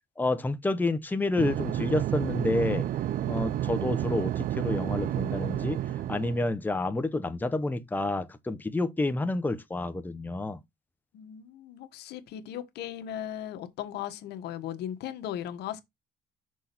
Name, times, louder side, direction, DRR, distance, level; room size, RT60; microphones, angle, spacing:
voice 1, 0.2-2.8 3.3-5.8 6.1-10.6, left 2 dB, 10° left, 0.9 m, -29 dB
sound 1, 1.4-6.5, right 12 dB, 55° right, 0.6 m, -30 dB
voice 2, 11.1-15.8, left 11 dB, 75° left, 1.3 m, -37 dB
6.3 x 4.1 x 5.8 m
cardioid pair, 110°, 17 cm